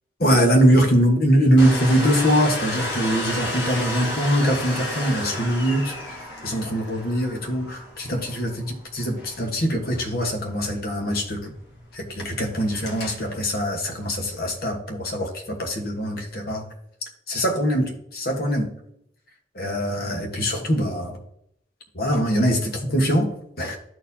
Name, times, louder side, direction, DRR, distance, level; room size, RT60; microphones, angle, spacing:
voice 1, 0.2-11.5 11.9-16.7 17.3-18.7 19.5-21.2 21.9-23.3 23.6-23.8, equal, 55° left, 3 dB, 1.3 m, -22 dB
Domestic sounds home sounds, 1.6-14.7, left 1 dB, 70° left, 1.6 m, -33 dB
13.0 x 4.4 x 2.7 m, 0.73 s
head